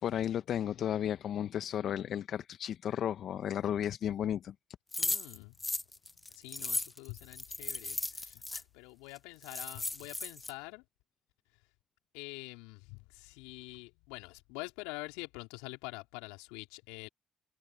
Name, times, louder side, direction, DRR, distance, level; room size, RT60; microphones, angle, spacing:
voice 1, 0.0-4.5, left 10 dB, 60° left, 1.2 m, -33 dB
sound 1, 4.9-8.6 9.2-9.3 9.4-10.5, left 2 dB, 20° left, 0.4 m, -36 dB
voice 2, 5.0-10.8 12.1-17.1, left 27 dB, 75° left, 4.5 m, -46 dB
hypercardioid pair, 45°, 0 cm